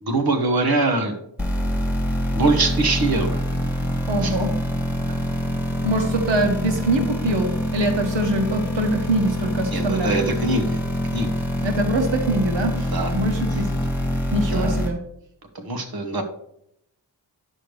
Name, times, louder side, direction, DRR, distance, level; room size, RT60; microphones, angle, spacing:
voice 1, 0.0-1.1 2.3-3.4 4.2-4.3 9.7-10.8 11.1-11.3 12.9-13.1 14.5-14.8 15.5-16.2, right 3 dB, 55° right, 6 dB, 1.3 m, -23 dB
sound 1, 1.4-14.9, equal, 5° right, 1.6 m, -25 dB
voice 2, 4.1-4.6 5.8-10.2 11.6-13.8 14.3-15.0, right 1 dB, 85° right, 4 dB, 1.1 m, -24 dB
9.8 x 6.6 x 3.2 m, 0.73 s
wide cardioid pair, 105°, 43 cm